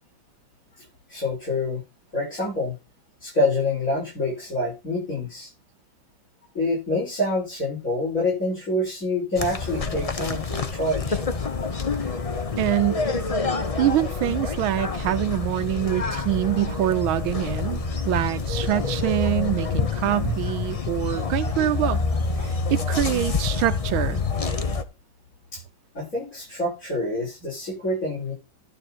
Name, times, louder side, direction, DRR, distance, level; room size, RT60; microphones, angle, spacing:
voice 1, 0.8-1.8 2.1-2.8 3.2-5.5 6.5-11.2 12.6-12.7 25.5-25.6 25.9-28.3, left 2 dB, 40° left, 7.5 m, -27 dB
sound 1, 9.3-24.8, left 4 dB, 65° left, 0.3 m, -27 dB
voice 2, 12.6-13.0 13.8-22.0 22.4-24.2, right 13 dB, 85° right, 1.5 m, -25 dB
11.5 x 7.0 x 4.5 m
omnidirectional pair, 2.2 m